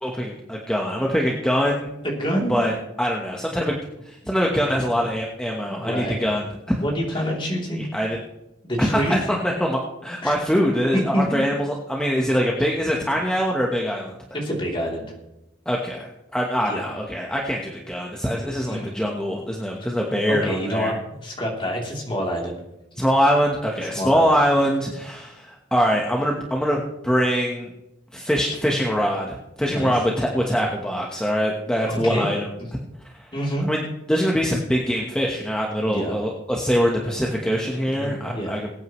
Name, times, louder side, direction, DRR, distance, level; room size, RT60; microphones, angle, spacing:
voice 1, 0.0-1.9 2.5-3.8 4.0-6.7 7.8-8.2 8.8-14.1 15.7-20.9 23.0-27.7 28.1-32.5 33.1-33.2 33.7-33.8 34.1-38.7, equal, 5° left, -1 dB, 1.2 m, -23 dB
voice 2, 2.0-2.5 5.7-6.2 6.7-7.9 8.6-9.2 10.2-10.3 11.1-11.4 14.3-15.1 16.6-16.8 18.7-19.0 20.3-22.5 23.9-24.2 29.6-30.0 31.9-32.3 33.3-33.7 35.8-36.2 38.0-38.6, equal, 25° left, -2 dB, 3.2 m, -27 dB
22.0 x 9.1 x 3.2 m, 0.92 s
head